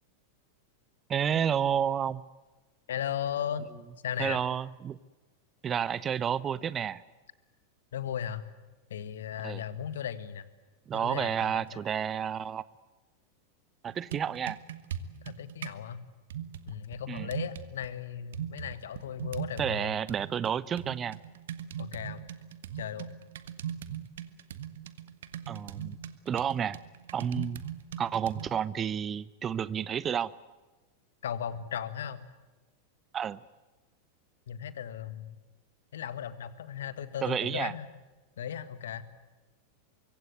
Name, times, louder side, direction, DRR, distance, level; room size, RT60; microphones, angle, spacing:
voice 1, 1.1-2.2 4.2-5.0 5.6-7.0 9.4-9.6 10.9-12.6 13.8-14.6 17.1-17.3 19.6-21.2 25.5-26.0 26.3-26.8 27.1-27.6 28.0-30.3 33.1-33.4 37.2-37.7, right 8 dB, 25° right, 20 dB, 0.8 m, -30 dB
voice 2, 2.9-3.7 4.0-4.4 7.9-8.4 8.9-10.5 11.0-11.8 15.2-16.1 16.7-20.0 21.8-22.3 22.8-23.1 31.2-32.2 34.5-35.4 35.9-37.9 38.4-39.0, left 9 dB, 60° left, 14 dB, 1.8 m, -36 dB
sound 1, 13.9-15.8 16.3-17.9 18.3-19.8 20.1-28.6, right 9 dB, 60° right, 1.5 m, -40 dB
24.5 x 24.0 x 8.0 m, 1.2 s
figure-of-eight pair, 90°, 0 cm